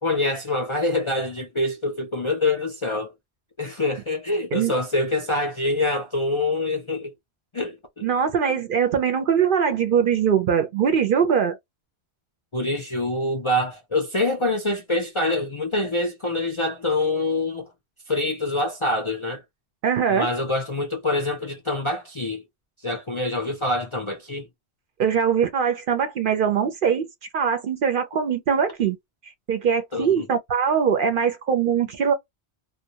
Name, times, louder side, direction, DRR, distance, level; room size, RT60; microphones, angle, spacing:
voice 1, 0.0-3.1 3.6-7.1 7.5-8.1 12.5-17.7 18.1-19.4 20.1-22.4 22.8-24.5 29.9-30.3, left 2 dB, 40° left, 0.4 m, -25 dB
voice 2, 8.0-11.6 19.8-20.3 25.0-27.1 27.3-29.0 29.5-32.1, right 7 dB, 60° right, 0.6 m, -22 dB
2.2 x 2.1 x 2.7 m
omnidirectional pair, 1.2 m